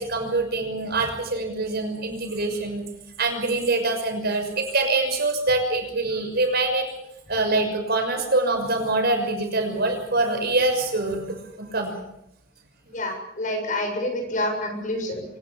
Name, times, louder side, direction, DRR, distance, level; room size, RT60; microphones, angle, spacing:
voice 1, 0.0-2.8 3.2-6.9 7.3-11.9, right 2 dB, 55° right, 5 dB, 6.3 m, -24 dB
voice 2, 12.9-15.2, left 1 dB, 40° left, 4 dB, 7.3 m, -28 dB
25.0 x 20.0 x 7.3 m, 0.76 s
head